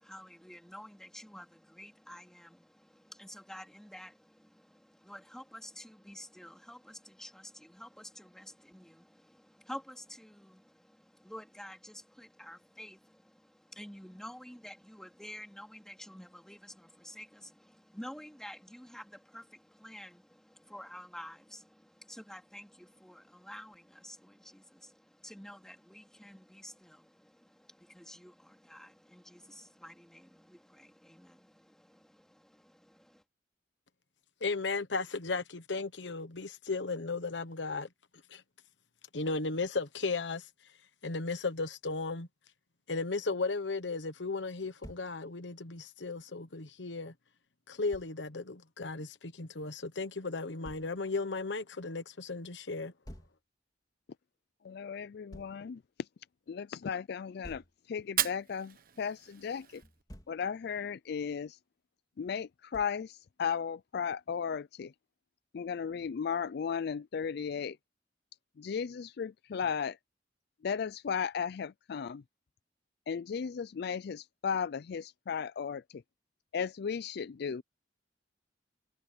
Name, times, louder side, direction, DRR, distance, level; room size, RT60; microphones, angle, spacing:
voice 1, 0.0-33.2, equal, 5° left, 3.1 m, -50 dB
voice 2, 34.4-37.9 38.3-38.4 39.1-40.5 41.0-42.3 42.9-47.1 47.7-52.9, left 3 dB, 80° left, 1.1 m, -35 dB
Thump thud, 44.8-45.1 47.9-48.1 50.6-50.9 53.0-53.4 55.3-55.6 57.4-57.8 59.8-60.4 62.7-63.0, equal, 20° left, 3.3 m, -49 dB
voice 3, 54.6-55.8 56.5-57.6 57.9-59.8 60.3-61.6 62.2-64.9 65.5-67.8 68.6-70.0 70.6-72.2 73.1-76.0 76.5-77.6, left 6 dB, 60° left, 0.4 m, -35 dB
Fire, 58.0-60.0, right 11 dB, 55° right, 1.1 m, -36 dB
head